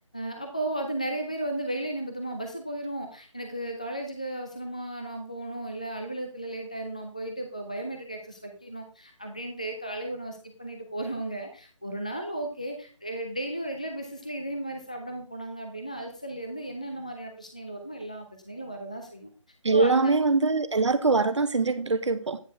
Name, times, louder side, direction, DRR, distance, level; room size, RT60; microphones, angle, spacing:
voice 1, 0.1-19.3 19.7-20.1, right 1 dB, 15° left, 0.3 m, -35 dB
voice 2, 19.6-22.4, right 3 dB, 60° right, 1.0 m, -23 dB
9.3 x 4.5 x 4.4 m
figure-of-eight pair, 170°, 17 cm